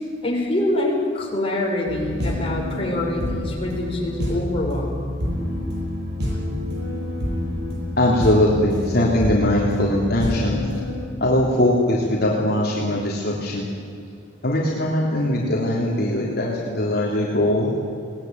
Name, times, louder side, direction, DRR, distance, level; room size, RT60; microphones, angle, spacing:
voice 1, 0.2-5.0, left 1 dB, 30° left, -2 dB, 6.1 m, -25 dB
sound 1, 1.9-11.1, left 1 dB, 65° right, 7.9 m, -28 dB
voice 2, 8.0-10.6 11.2-13.7 14.4-17.7, left 1 dB, 55° left, -4 dB, 3.4 m, -21 dB
22.0 x 19.0 x 9.5 m, 2.4 s
head